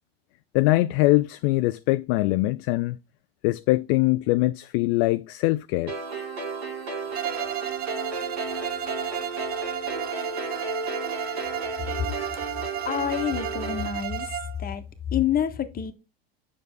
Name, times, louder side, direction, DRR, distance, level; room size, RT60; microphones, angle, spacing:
voice 1, 0.5-3.0 3.4-5.9, left 19 dB, 50° left, 0.4 m, -22 dB
sound 1, 5.9-13.9, right 3 dB, 85° right, 4.5 m, -33 dB
Bowed string instrument, 7.1-14.6, right 11 dB, 30° right, 0.5 m, -33 dB
voice 2, 12.8-14.3 14.6-14.9 15.1-15.9, left 9 dB, 30° left, 1.3 m, -27 dB
6.8 x 6.6 x 2.2 m
hypercardioid pair, 95°, 31 cm